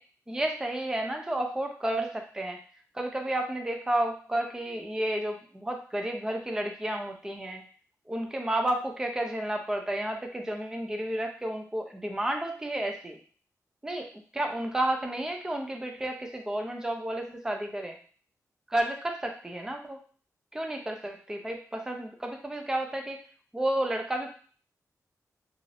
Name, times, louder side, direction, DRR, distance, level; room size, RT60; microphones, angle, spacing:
voice 1, 0.3-2.6 2.9-7.6 8.1-13.2 13.8-14.1 14.3-18.0 18.7-20.0 20.5-23.2 23.5-24.3, right 1 dB, 10° right, 3 dB, 0.5 m, -31 dB
2.6 x 2.4 x 3.2 m, 0.42 s
wide cardioid pair, 115°, 6 cm